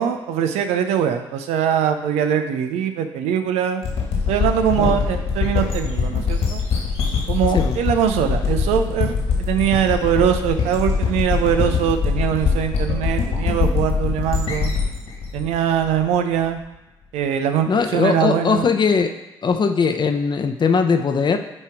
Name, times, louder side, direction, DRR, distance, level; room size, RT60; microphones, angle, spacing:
voice 1, 0.0-3.8 4.3-6.6 7.3-14.7 15.3-16.6 17.1-18.7, right 9 dB, 80° right, 7 dB, 0.6 m, -22 dB
sound 1, 3.8-16.4, left 5 dB, 70° left, 2.1 m, -23 dB
voice 2, 17.7-19.1 19.4-21.4, left 5 dB, 45° left, 7 dB, 0.8 m, -20 dB
8.8 x 3.0 x 4.5 m, 1.0 s
supercardioid pair, 55°, 11 cm